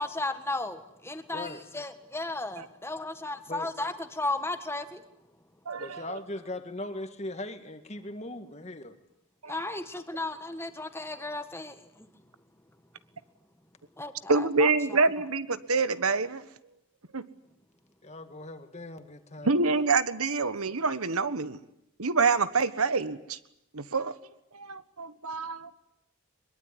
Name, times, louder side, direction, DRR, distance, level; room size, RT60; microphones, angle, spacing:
voice 1, 0.0-5.0 9.5-12.1 14.0-15.0, left 2 dB, 10° left, 1.6 m, -35 dB
voice 2, 1.3-1.6 3.5-3.7 5.8-9.0 18.0-19.9, left 2 dB, 30° left, 1.9 m, -39 dB
voice 3, 5.7-6.2 9.4-9.7 14.3-16.4 17.1-17.2 19.4-21.6 22.0-23.4 23.7-24.2 24.5-25.7, right 4 dB, 80° right, 1.4 m, -27 dB
22.5 x 22.0 x 9.9 m
head